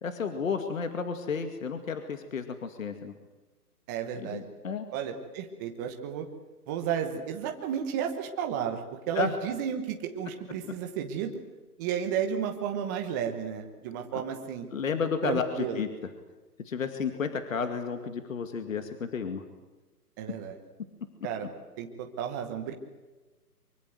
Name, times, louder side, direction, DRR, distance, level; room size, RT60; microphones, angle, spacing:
voice 1, 0.0-3.1 4.2-4.9 9.1-9.3 14.1-14.2 14.7-15.9 16.6-19.4, left 5 dB, 55° left, 8 dB, 2.4 m, -32 dB
voice 2, 3.9-4.4 4.9-6.3 6.7-11.3 11.8-14.7 15.2-15.9 20.2-20.6 21.2-21.5 21.8-22.7, right 8 dB, 10° right, 4 dB, 1.0 m, -33 dB
24.5 x 23.5 x 7.9 m, 1.2 s
hypercardioid pair, 155°, 48 cm